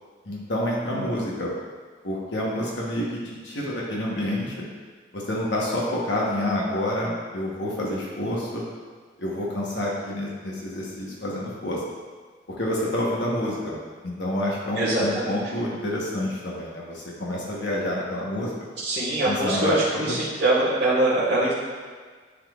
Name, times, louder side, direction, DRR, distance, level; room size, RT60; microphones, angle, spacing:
voice 1, 0.2-1.5 2.0-4.6 5.1-8.6 9.2-11.8 12.5-13.8 14.0-18.5 19.2-20.2, left 1 dB, 70° left, -4 dB, 1.2 m, -28 dB
voice 2, 14.8-15.4 18.8-21.5, right 2 dB, 70° right, -10 dB, 1.6 m, -23 dB
9.9 x 3.9 x 2.5 m, 1.5 s
head